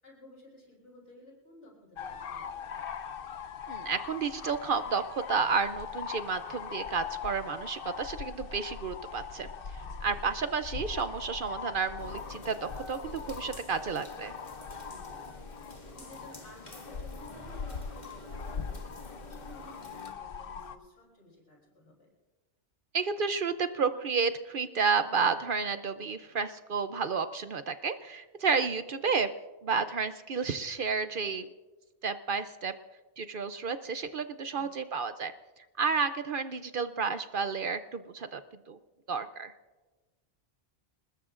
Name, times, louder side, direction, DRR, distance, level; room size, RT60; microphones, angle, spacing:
voice 1, 0.0-2.9 9.8-10.2 14.9-22.1 34.5-34.8, left 1 dB, 80° left, -3 dB, 6.6 m, -55 dB
sound 1, 2.0-20.7, left 6 dB, 55° left, 0.9 m, -41 dB
voice 2, 3.7-9.5 10.0-14.3 22.9-29.3 29.6-31.5 32.0-32.7 33.2-35.3 35.8-38.4 38.7-38.8 39.1-39.5, right 5 dB, 55° right, 11 dB, 0.7 m, -31 dB
sound 2, 12.0-20.1, left 1 dB, 40° left, 2.1 m, -49 dB
26.5 x 20.5 x 2.5 m, 1.2 s
omnidirectional pair, 1.2 m